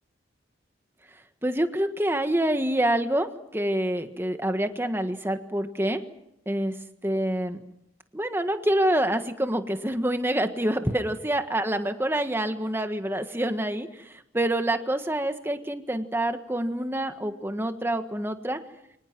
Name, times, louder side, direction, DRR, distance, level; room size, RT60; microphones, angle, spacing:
voice 1, 1.4-6.0 6.4-6.7 7.0-7.6 8.1-18.6, right 1 dB, 10° right, 7 dB, 1.5 m, -27 dB
29.0 x 25.0 x 6.1 m, 0.81 s
head